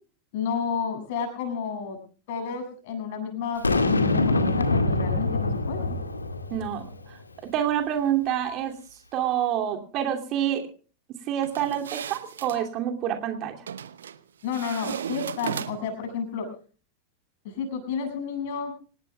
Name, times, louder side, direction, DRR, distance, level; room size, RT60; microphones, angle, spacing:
voice 1, 0.3-2.0 2.3-6.0 14.4-16.5 17.4-18.7, left 6 dB, 50° left, 5 dB, 7.2 m, -31 dB
Boom, 3.6-7.0, left 2 dB, 80° left, 1.9 m, -24 dB
voice 2, 6.5-8.7 9.1-10.7 11.3-13.7, right 10 dB, 40° right, 4 dB, 2.7 m, -27 dB
sound 1, 11.4-12.6 13.7-14.2 14.5-16.0, right 8 dB, 65° right, 0.9 m, -35 dB
26.5 x 18.5 x 2.3 m, 0.40 s
figure-of-eight pair, 90°, 0 cm